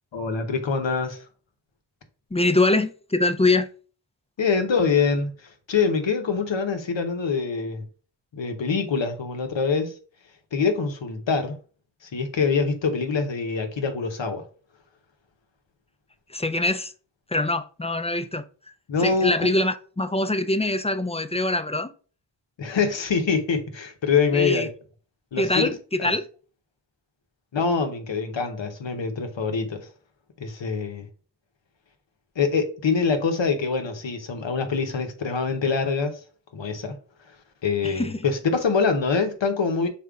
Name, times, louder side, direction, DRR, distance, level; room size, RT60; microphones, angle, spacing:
voice 1, 0.1-1.2 4.4-5.3 5.7-7.8 8.3-9.9 10.5-11.6 12.1-14.5 18.9-19.5 22.6-24.7 25.3-25.7 26.0-26.1 27.5-29.9 30.4-31.1 32.4-36.2 36.5-37.0 37.6-39.9, left 5 dB, 85° left, 0.9 m, -24 dB
voice 2, 2.3-3.7 16.3-16.9 17.3-18.4 19.0-21.9 24.3-24.7 25.4-26.3 37.8-38.2, left 2 dB, 15° left, 0.4 m, -23 dB
5.2 x 4.3 x 2.3 m
wide cardioid pair, 55°, 44 cm